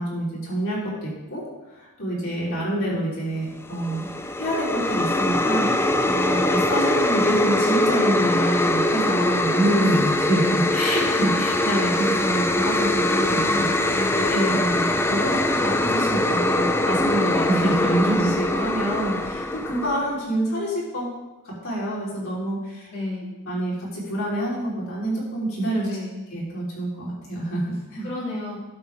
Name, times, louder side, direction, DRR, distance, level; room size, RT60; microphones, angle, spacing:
voice 1, 0.0-1.4 1.7-4.1 4.4-13.7 14.1-21.1 21.4-22.9 23.5-25.9 26.3-28.1, right 1 dB, 65° left, -6 dB, 3.8 m, -26 dB
sound 1, 3.7-20.1, left 1 dB, 10° left, 0.4 m, -22 dB
voice 2, 13.3-14.2 22.9-23.4 25.8-26.3 28.0-28.6, left 2 dB, 50° left, -8 dB, 2.5 m, -32 dB
12.0 x 7.1 x 3.5 m, 1.1 s
head